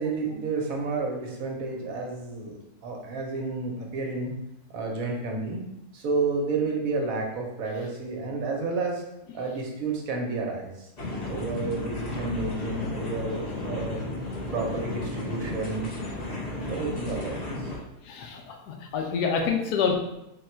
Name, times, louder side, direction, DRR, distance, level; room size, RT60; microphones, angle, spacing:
voice 1, 0.0-2.5 2.8-4.3 4.7-5.6 5.9-9.0 9.3-10.9 11.3-14.0 14.5-15.9 16.7-17.7 19.4-19.5, right 3 dB, 65° right, 0 dB, 1.1 m, -30 dB
sound 1, 11.0-17.8, left 2 dB, 35° left, 0.7 m, -33 dB
voice 2, 18.0-20.0, left 6 dB, 90° left, 2 dB, 1.2 m, -27 dB
3.8 x 2.3 x 4.3 m, 0.86 s
omnidirectional pair, 1.7 m